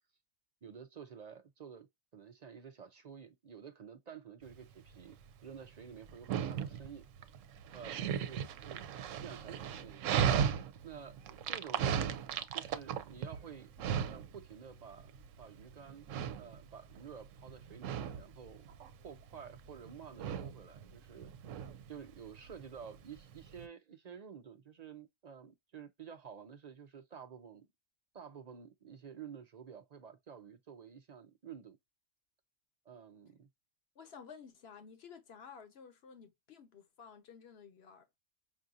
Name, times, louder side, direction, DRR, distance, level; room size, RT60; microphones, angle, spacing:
voice 1, 0.6-5.2 5.4-7.1 7.7-8.9 9.2-11.9 12.5-13.7 14.0-15.1 15.4-16.1 16.4-18.7 19.0-21.3 21.9-27.7 28.1-31.8 32.9-33.5, right 7 dB, 55° right, 0.4 m, -51 dB
Dog, 4.5-23.7, right 8 dB, 80° right, 0.9 m, -37 dB
voice 2, 33.9-38.1, left 6 dB, 55° left, 1.2 m, -53 dB
5.4 x 2.5 x 2.5 m
omnidirectional pair, 1.3 m